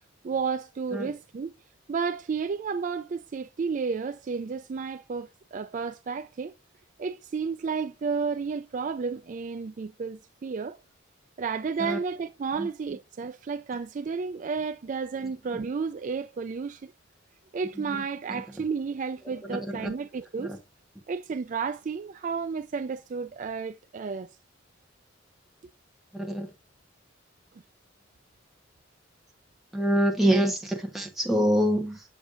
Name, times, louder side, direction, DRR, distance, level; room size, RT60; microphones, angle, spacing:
voice 1, 0.2-1.5 1.9-6.5 7.0-10.8 11.4-16.9 17.5-20.6 21.1-24.3, right 5 dB, 40° right, 0.3 m, -32 dB
voice 2, 19.5-19.9 20.4-20.6 26.1-26.5 29.7-32.0, equal, ahead, 1.1 m, -25 dB
7.1 x 6.5 x 2.5 m
head